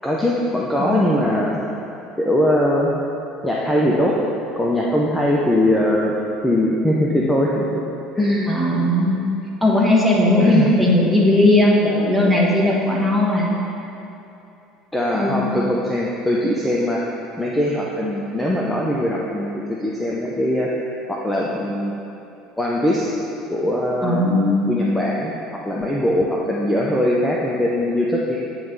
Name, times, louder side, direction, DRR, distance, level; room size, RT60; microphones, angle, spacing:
voice 1, 0.0-1.6 2.2-2.9 3.4-4.2 4.5-6.1 6.4-7.8 8.2-8.6 10.4-10.7 14.9-17.1 17.4-21.9 22.6-23.1 23.5-24.2 24.7-28.4, left 1 dB, 10° left, -4 dB, 0.6 m, -21 dB
voice 2, 8.5-9.2 9.6-13.5 15.1-15.4 24.0-24.7, left 1 dB, 10° right, -3 dB, 1.2 m, -17 dB
8.7 x 3.2 x 3.9 m, 2.8 s
figure-of-eight pair, 65°, 0 cm